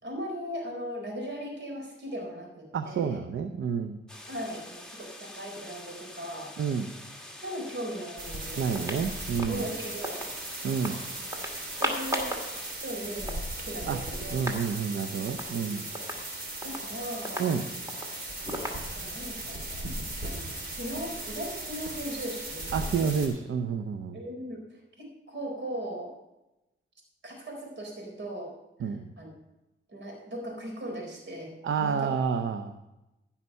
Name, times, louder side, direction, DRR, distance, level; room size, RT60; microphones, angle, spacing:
voice 1, 0.0-3.2 4.3-6.5 7.4-9.0 9.4-10.3 11.8-12.4 12.7-14.3 15.3-15.9 16.6-17.7 18.4-18.5 18.9-19.9 20.2-22.8 24.1-26.1 27.2-28.5 28.8-29.3 29.9-32.1, equal, 70° right, 0 dB, 4.2 m, -38 dB
voice 2, 2.7-4.0 6.6-6.9 8.6-9.6 10.6-11.0 13.8-14.0 14.3-15.8 17.4-17.7 22.7-24.2 28.8-29.1 31.6-32.8, right 6 dB, 85° right, 8 dB, 0.7 m, -29 dB
sound 1, 4.1-12.7, left 1 dB, 5° left, 1.8 m, -46 dB
sound 2, 8.2-23.3, right 2 dB, 50° right, 3.3 m, -38 dB
sound 3, 8.8-10.3 10.7-11.0 11.3-12.5 12.8-12.9 13.1-14.7 15.0-15.1 15.3-15.6 16.0-19.3, equal, 15° right, 2.4 m, -37 dB
15.5 x 5.8 x 5.5 m, 0.97 s
cardioid pair, 70°, 20 cm